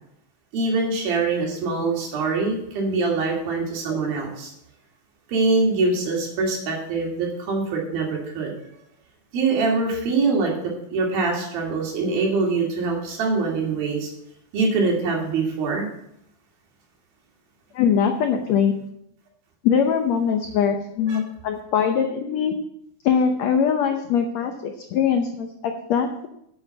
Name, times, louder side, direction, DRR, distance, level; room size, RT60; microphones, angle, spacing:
voice 1, 0.5-4.5 5.3-8.5 9.3-10.5 10.9-14.1 14.5-15.9 21.1-21.2, right 3 dB, 80° right, -1 dB, 4.2 m, -23 dB
voice 2, 17.7-18.7 19.6-22.5 23.0-26.3, left 7 dB, 90° left, 5 dB, 1.5 m, -22 dB
8.2 x 8.2 x 6.9 m, 0.76 s
omnidirectional pair, 4.2 m